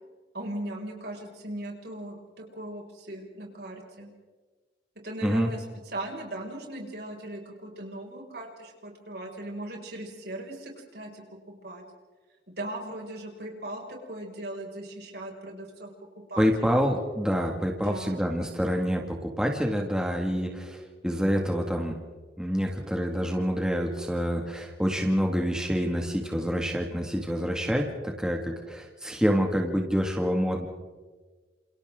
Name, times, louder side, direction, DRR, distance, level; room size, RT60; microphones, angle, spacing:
voice 1, 0.3-4.1 5.0-11.8 12.5-15.9 16.3-16.8 17.8-18.4, right 1 dB, 60° right, 0 dB, 5.9 m, -39 dB
voice 2, 16.4-22.0 22.4-30.7, equal, 5° right, 1 dB, 2.0 m, -27 dB
30.0 x 28.0 x 3.8 m, 1.4 s
head